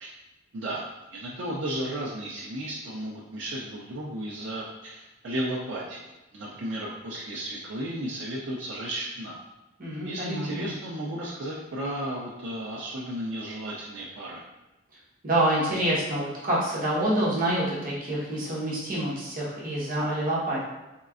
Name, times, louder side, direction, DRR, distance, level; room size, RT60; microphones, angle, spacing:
voice 1, 0.5-0.8 1.1-6.1 6.3-9.4 10.0-14.4, right 1 dB, 80° right, -5 dB, 0.5 m, -34 dB
voice 2, 9.8-10.7 15.2-20.6, right 1 dB, 50° right, -7 dB, 1.1 m, -27 dB
3.7 x 3.1 x 2.4 m, 1.0 s
head